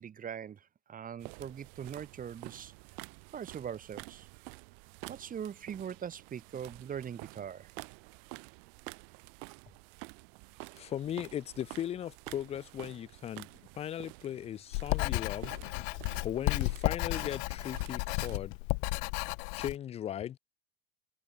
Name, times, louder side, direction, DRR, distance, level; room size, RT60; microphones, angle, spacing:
voice 1, 0.0-2.7 3.3-4.3 5.1-7.7, right 8 dB, 25° right, 2.5 m, -41 dB
sound 1, 1.2-18.4, right 40 dB or more, 65° right, 1.5 m, -50 dB
voice 2, 10.8-13.5 13.8-15.5 16.2-18.5 19.6-20.4, left 10 dB, 20° left, 0.4 m, -37 dB
Writing, 14.7-19.7, left 39 dB, 60° left, 0.7 m, -33 dB
supercardioid pair, 125°, 31 cm